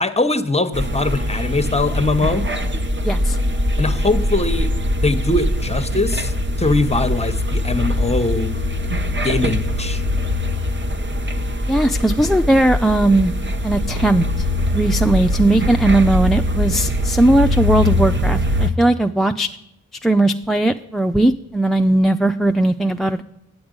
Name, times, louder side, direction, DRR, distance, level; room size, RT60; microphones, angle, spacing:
voice 1, 0.0-2.5 3.8-4.7 5.0-6.3 6.6-8.6 9.2-10.0, left 2 dB, 20° left, 10 dB, 0.8 m, -21 dB
sound 1, 0.7-18.7, left 1 dB, 35° right, 0.9 m, -22 dB
voice 2, 3.0-3.4 11.7-13.3 13.6-14.5 14.7-19.5 20.0-23.2, right 1 dB, ahead, 8 dB, 0.3 m, -17 dB
8.7 x 7.9 x 5.2 m, 0.79 s
cardioid pair, 45°, 34 cm